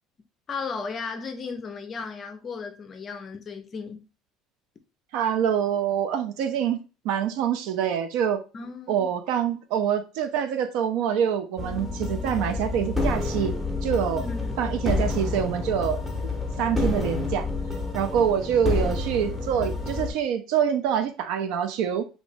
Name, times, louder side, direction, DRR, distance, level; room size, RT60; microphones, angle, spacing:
voice 1, 0.5-4.1 8.5-9.1 14.2-14.7, left 4 dB, 25° left, 0.4 m, -35 dB
voice 2, 5.1-8.4 8.9-13.5 13.8-14.2 14.6-16.0 16.6-17.5 17.9-22.1, right 8 dB, 65° right, 0.4 m, -25 dB
sound 1, 11.6-20.1, left 3 dB, 5° right, 0.7 m, -29 dB
2.9 x 2.6 x 3.3 m
cardioid pair, 170°, 0 cm